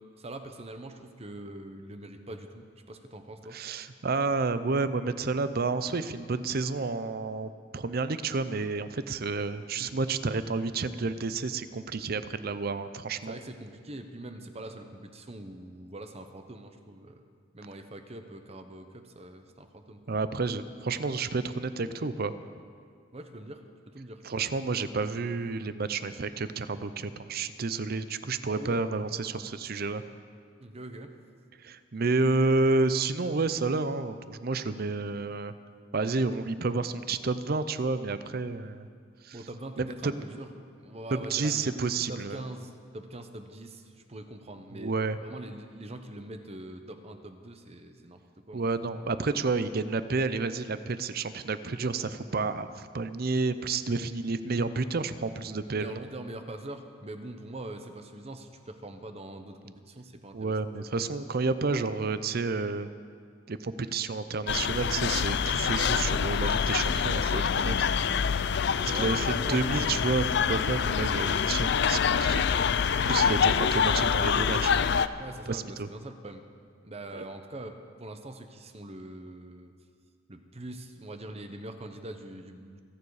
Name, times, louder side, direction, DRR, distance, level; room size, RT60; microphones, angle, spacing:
voice 1, 0.2-3.6 13.2-17.2 17.5-20.0 23.1-24.2 28.6-28.8 30.6-31.1 39.3-40.5 40.8-41.7 42.1-44.9 45.2-49.0 55.7-60.7 68.8-69.6 75.2-76.4 76.8-79.7 80.3-82.8, right 1 dB, 35° right, 7 dB, 1.0 m, -43 dB
voice 2, 3.5-13.4 20.1-22.3 24.2-30.0 31.6-35.5 35.9-38.9 39.2-39.4 39.8-40.1 41.1-42.4 44.7-45.2 48.5-56.1 60.3-62.9 63.5-67.8 68.8-72.4 73.0-74.7 75.5-75.9 77.1-77.2, right 3 dB, 50° right, 13 dB, 0.6 m, -30 dB
sound 1, 64.5-75.1, left 7 dB, 60° left, 0.5 m, -26 dB
26.5 x 9.6 x 4.9 m, 2.1 s
head